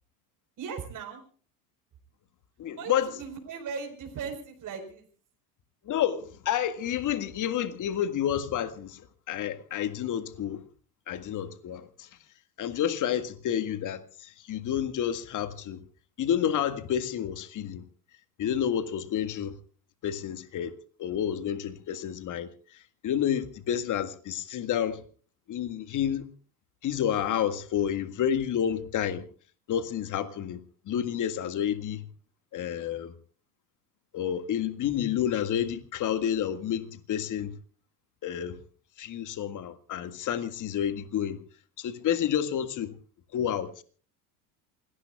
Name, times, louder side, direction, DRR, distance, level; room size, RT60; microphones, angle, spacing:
voice 1, 0.6-1.2 2.8-5.1, right 6 dB, 40° right, 4.5 m, -38 dB
voice 2, 2.6-3.1 5.8-10.6 11.1-12.1 12.6-15.8 16.2-17.8 18.4-19.6 20.0-20.7 21.0-25.0 25.5-26.3 26.8-29.3 29.7-32.1 32.5-33.1 34.1-37.6 38.2-38.6 39.0-41.4 41.8-43.0 43.3-43.8, left 9 dB, 40° left, 1.9 m, -30 dB
28.0 x 18.5 x 2.3 m
hypercardioid pair, 75°, 48 cm